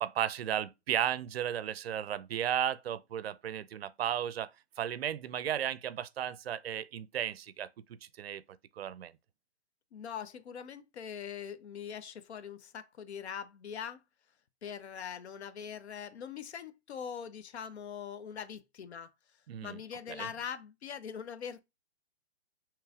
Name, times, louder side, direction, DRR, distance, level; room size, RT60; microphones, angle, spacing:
voice 1, 0.0-4.5 4.8-8.4 8.8-9.1 19.5-19.8 20.2-20.3, right 10 dB, 65° right, 0.5 m, -34 dB
voice 2, 9.9-14.0 14.6-19.1 19.6-21.6, left 8 dB, 70° left, 0.6 m, -42 dB
4.8 x 3.1 x 2.3 m
hypercardioid pair, 170°, 34 cm